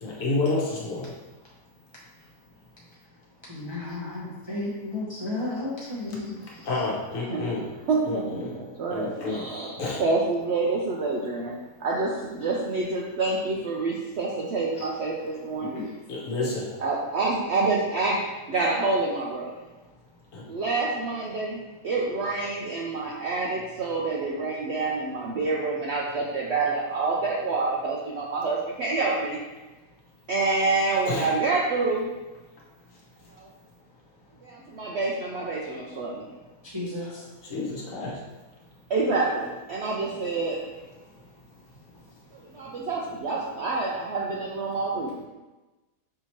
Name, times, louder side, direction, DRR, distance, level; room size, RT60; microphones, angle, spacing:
voice 1, 0.0-1.1 6.7-7.7 8.0-8.4 8.9-9.4 9.8-10.0 16.1-16.7 20.3-20.4 31.0-31.3 37.5-38.2, left 3 dB, 60° left, -4 dB, 1.3 m, -29 dB
voice 2, 3.5-6.9 14.7-15.3 15.6-16.0 36.6-37.3, left 2 dB, 30° right, -7 dB, 0.5 m, -34 dB
voice 3, 7.9-8.2 8.8-15.7 16.8-18.2 18.5-19.5 20.5-29.4 30.3-32.1 33.3-33.5 34.4-36.3 38.9-40.6 42.3-45.3, right 3 dB, 70° right, -3 dB, 0.6 m, -27 dB
5.6 x 2.8 x 3.0 m, 1.2 s
omnidirectional pair, 1.6 m